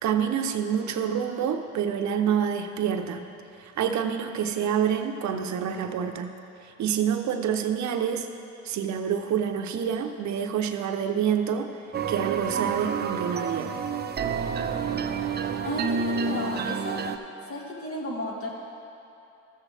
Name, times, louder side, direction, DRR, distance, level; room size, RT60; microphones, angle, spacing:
voice 1, 0.0-3.3 3.6-8.3 8.6-11.8 12.1-13.7, right 8 dB, 70° right, 6 dB, 0.7 m, -27 dB
sound 1, 11.9-17.2, right 6 dB, 35° right, 0.6 m, -29 dB
voice 2, 15.6-17.0 17.5-18.5, left 1 dB, 45° left, -2 dB, 1.9 m, -33 dB
14.0 x 7.5 x 3.3 m, 2.9 s
cardioid pair, 90°, 30 cm